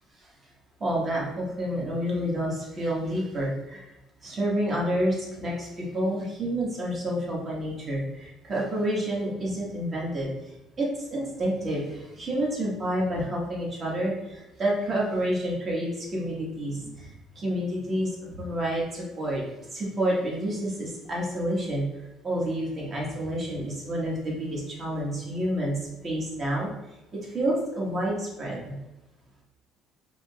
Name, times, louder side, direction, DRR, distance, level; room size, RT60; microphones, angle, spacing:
voice 1, 0.8-3.8 4.2-10.3 10.8-19.4 19.7-21.8 22.2-26.7 27.3-28.7, right 1 dB, 35° right, -4 dB, 1.3 m, -29 dB
5.0 x 2.8 x 2.3 m, 0.97 s
cardioid pair, 125°, 0 cm